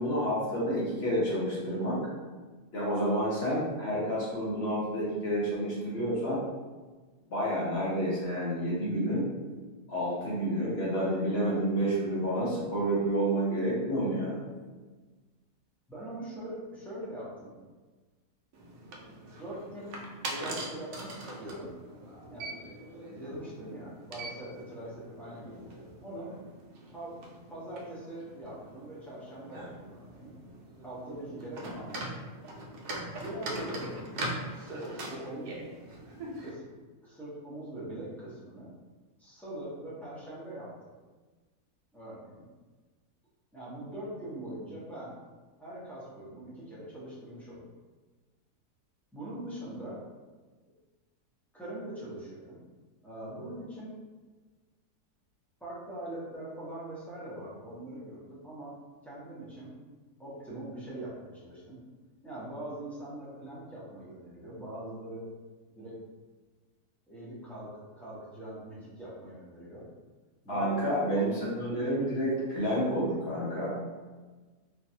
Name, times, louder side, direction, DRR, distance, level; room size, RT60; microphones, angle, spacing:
voice 1, 0.0-2.0 2.7-6.4 7.3-9.3 9.9-14.4 70.5-73.7, equal, 50° left, -6 dB, 0.9 m, -29 dB
voice 2, 15.9-17.5 19.3-21.7 22.3-22.6 23.1-26.4 26.9-27.2 27.5-30.3 30.8-32.1 33.1-34.0 34.5-35.5 36.4-36.6 37.0-38.7 39.2-40.7 41.9-42.4 43.5-45.1 45.6-47.6 49.1-50.0 51.5-52.6 53.0-54.0 55.6-58.7 59.0-59.7 60.2-61.8 62.2-65.3 65.7-66.0 67.1-69.8 70.4-71.2, right 1 dB, ahead, -10 dB, 0.5 m, -42 dB
sound 1, 18.5-36.5, right 1 dB, 80° right, 1.1 m, -42 dB
3.1 x 2.5 x 2.7 m, 1.3 s
omnidirectional pair, 1.7 m